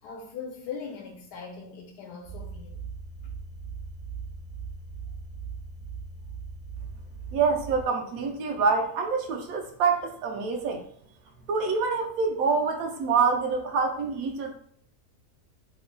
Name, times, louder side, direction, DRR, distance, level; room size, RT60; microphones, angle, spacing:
voice 1, 0.0-2.8, left 6 dB, 85° left, 1.1 m, -40 dB
sound 1, 2.2-7.8, right 5 dB, 45° right, 0.4 m, -39 dB
voice 2, 7.3-10.8 11.5-14.5, right 5 dB, 70° right, 1.0 m, -26 dB
3.1 x 2.2 x 3.6 m
omnidirectional pair, 1.7 m